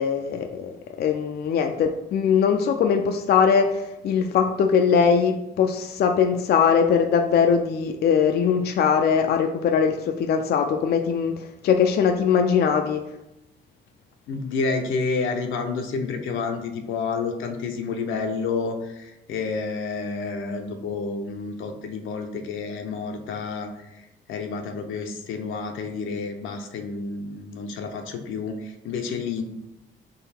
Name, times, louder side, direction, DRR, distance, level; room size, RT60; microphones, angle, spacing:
voice 1, 0.0-13.0, left 6 dB, 55° left, 6 dB, 0.4 m, -21 dB
voice 2, 14.3-29.4, left 4 dB, 80° left, 4 dB, 0.7 m, -30 dB
3.9 x 3.1 x 4.3 m, 0.90 s
cardioid pair, 90°, 20 cm